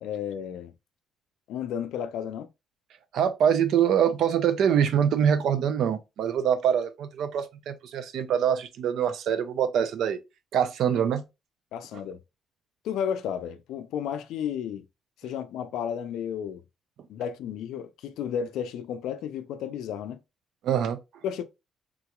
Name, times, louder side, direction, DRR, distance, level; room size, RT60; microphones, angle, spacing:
voice 1, 0.0-0.7 1.5-2.5 11.7-12.2 12.8-14.9 15.2-16.6 17.1-20.2 21.2-21.4, left 8 dB, 85° left, 0.4 m, -32 dB
voice 2, 3.1-10.2 10.5-11.2 11.9-12.0 20.6-21.0, right 8 dB, 70° right, 0.5 m, -24 dB
3.7 x 2.9 x 2.3 m
cardioid pair, 120°, 0 cm